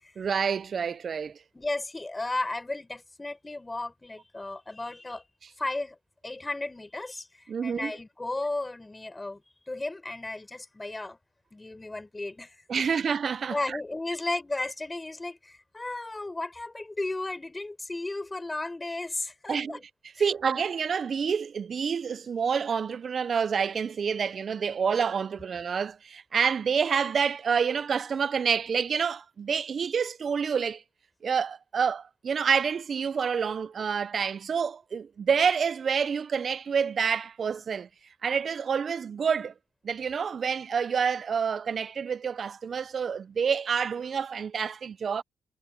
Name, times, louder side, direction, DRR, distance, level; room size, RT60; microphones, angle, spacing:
voice 1, 0.2-1.4 7.5-7.9 12.7-13.8 19.5-19.8 20.2-30.8 31.2-37.9 38.2-39.5 39.8-45.2, right 6 dB, 50° right, 0.6 m, -28 dB
voice 2, 1.5-5.2 5.6-6.0 6.2-9.4 9.7-11.2 11.5-12.7 13.4-19.8 20.1-20.2, left 2 dB, 20° left, 6.1 m, -34 dB
cardioid pair, 80°, 0 cm